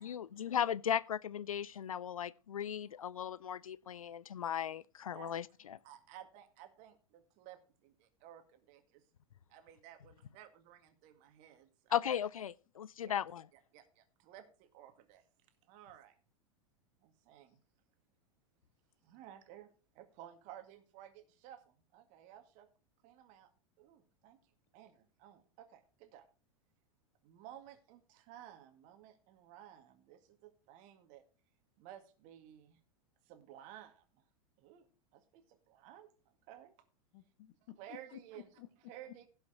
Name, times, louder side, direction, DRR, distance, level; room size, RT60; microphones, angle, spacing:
voice 1, 0.0-5.8 11.9-13.4, left 9 dB, 75° left, 0.4 m, -37 dB
voice 2, 5.8-9.0 9.5-12.0 13.0-13.2 13.5-15.2 15.7-16.1 17.0-17.6 19.0-22.7 23.0-23.5 23.8-24.4 24.7-26.3 27.2-31.2 31.8-32.8 33.3-34.2 34.6-34.9 35.1-36.7 37.8-38.5 38.9-39.3, right 11 dB, 45° right, 2.0 m, -55 dB
voice 3, 37.1-39.2, left 12 dB, 50° left, 1.1 m, -54 dB
16.5 x 5.8 x 3.9 m
figure-of-eight pair, 90°, 18 cm